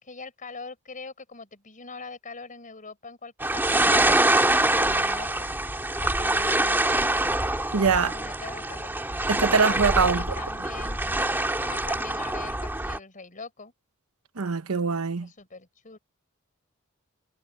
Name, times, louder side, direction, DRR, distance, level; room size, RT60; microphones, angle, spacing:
voice 1, 0.0-5.5 6.0-6.9 8.0-8.9 10.0-11.3 11.6-13.7 15.2-16.0, left 4 dB, 40° left, 5.6 m, -43 dB
sound 1, 3.4-13.0, right 1 dB, 10° right, 2.2 m, -25 dB
voice 2, 7.7-8.1 9.3-10.2 14.4-15.3, right 5 dB, 85° right, 1.0 m, -23 dB
head